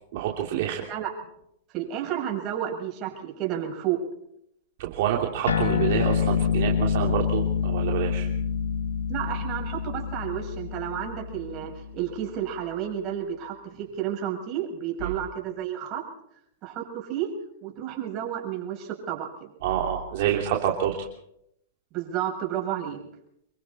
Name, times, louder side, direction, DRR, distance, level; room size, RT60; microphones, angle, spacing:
voice 1, 0.1-0.9 4.8-8.3 15.0-15.1 19.6-21.1, right 10 dB, 60° right, 0 dB, 3.1 m, -27 dB
voice 2, 1.7-4.0 9.1-16.0 16.6-17.3 17.6-19.3 21.9-23.0, right 10 dB, 40° right, 1 dB, 7.3 m, -31 dB
sound 1, 5.5-12.3, left 7 dB, 85° left, 2.2 m, -27 dB
26.5 x 23.0 x 4.4 m, 0.76 s
hypercardioid pair, 115°, 0 cm